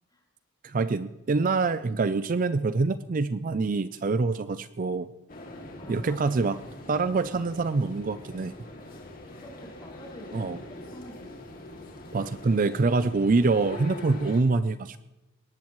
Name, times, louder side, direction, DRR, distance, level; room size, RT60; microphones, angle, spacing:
voice 1, 0.6-5.1 5.9-6.6 6.9-8.5 10.3-10.6 12.1-15.0, right 3 dB, 40° right, 13 dB, 0.4 m, -25 dB
sound 1, 5.3-14.4, left 1 dB, 45° left, 2.5 m, -43 dB
voice 2, 5.8-6.6 9.4-11.4, equal, 20° left, -3 dB, 5.3 m, -47 dB
21.0 x 18.0 x 3.1 m, 1.0 s
head